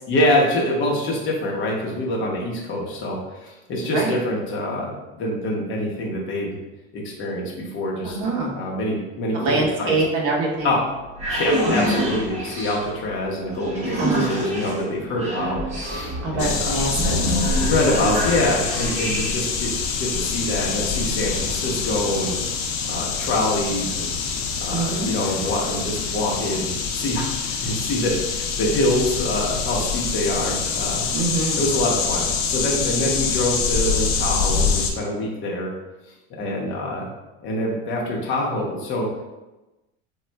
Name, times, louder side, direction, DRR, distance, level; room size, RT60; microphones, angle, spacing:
voice 1, 0.1-6.6 6.9-8.2 8.5-9.9 10.6-10.8 11.3-16.7 17.5-19.7 20.0-22.4 22.9-24.1 24.6-31.1 31.6-35.7 36.4-37.1 37.4-39.2, left 1 dB, 40° left, -2 dB, 0.9 m, -25 dB
voice 2, 8.0-8.6 9.3-10.7 14.0-14.4 16.2-17.2 24.7-25.1 31.1-31.6, right 3 dB, 45° right, -3 dB, 0.9 m, -24 dB
sound 1, 10.8-19.6, equal, 20° right, 0.7 m, -27 dB
sound 2, 16.4-34.9, left 5 dB, 75° left, 0.6 m, -25 dB
3.9 x 2.3 x 2.2 m, 1.0 s
supercardioid pair, 130°, 31 cm